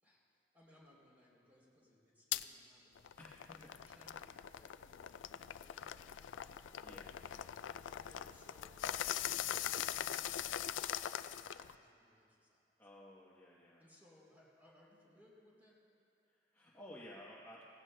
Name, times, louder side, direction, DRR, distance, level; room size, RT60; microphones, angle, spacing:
voice 1, 0.0-5.1 5.5-7.0 7.5-8.8 9.4-12.6 13.8-15.8, left 1 dB, 10° right, -5 dB, 3.2 m, -67 dB
sound 1, 2.3-2.4 2.9-11.7, left 11 dB, 90° left, 0.3 m, -42 dB
voice 2, 3.2-3.5 6.8-7.1 12.8-13.8 16.3-17.6, left 1 dB, 15° left, -6 dB, 1.0 m, -55 dB
17.5 x 16.0 x 2.2 m, 2.5 s
head